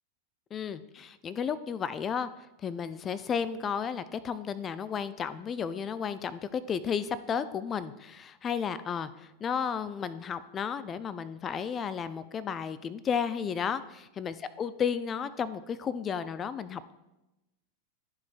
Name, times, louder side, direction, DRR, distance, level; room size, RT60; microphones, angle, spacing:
voice 1, 0.5-2.3 2.6-13.8 14.2-16.9, left 7 dB, 25° left, 14 dB, 0.4 m, -33 dB
12.5 x 4.8 x 2.3 m, 0.96 s
figure-of-eight pair, 90°, 0 cm